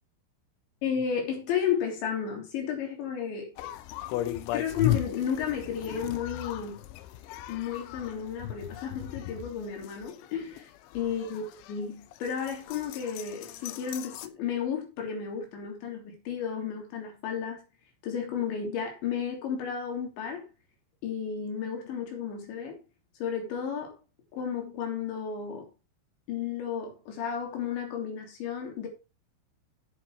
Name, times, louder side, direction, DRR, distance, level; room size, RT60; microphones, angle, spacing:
voice 1, 0.8-3.7 4.5-6.8 7.5-17.6 18.0-20.4 21.0-22.8 23.2-23.9 24.3-25.7 26.3-28.9, left 7 dB, 60° left, 5.3 m, -33 dB
sound 1, 3.6-14.3, left 13 dB, 80° left, 3.0 m, -36 dB
10.5 x 8.2 x 4.6 m
omnidirectional pair, 6.0 m